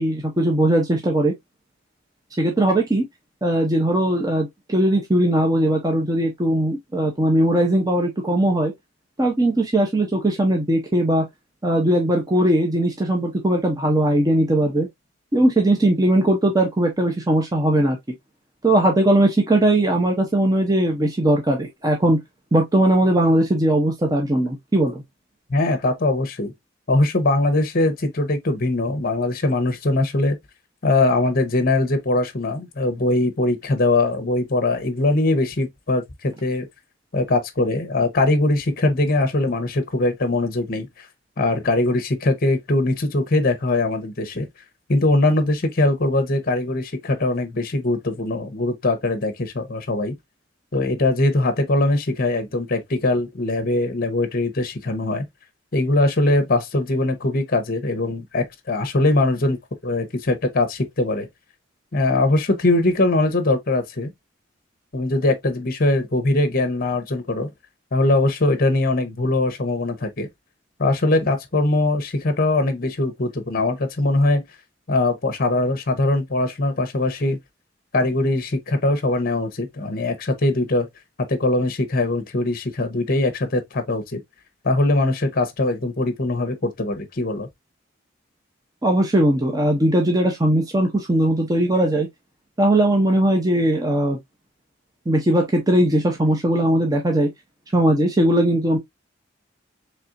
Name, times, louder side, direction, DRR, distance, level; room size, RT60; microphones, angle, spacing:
voice 1, 0.0-1.3 2.4-3.0 3.4-8.7 9.2-11.2 11.6-14.9 15.3-18.0 18.6-22.2 22.5-25.0 88.8-92.1 92.6-94.2 95.1-97.3 97.7-98.8, right 1 dB, 20° right, 0.7 m, -19 dB
voice 2, 25.5-26.5 26.9-30.4 30.8-36.7 37.1-41.0 41.4-44.5 44.9-50.1 50.7-55.3 55.7-59.6 59.8-61.3 61.9-64.1 64.9-67.5 67.9-70.3 70.8-74.4 74.9-77.4 77.9-80.9 81.2-84.2 84.6-87.5, left 2 dB, 50° left, 0.8 m, -21 dB
4.2 x 3.3 x 2.5 m
head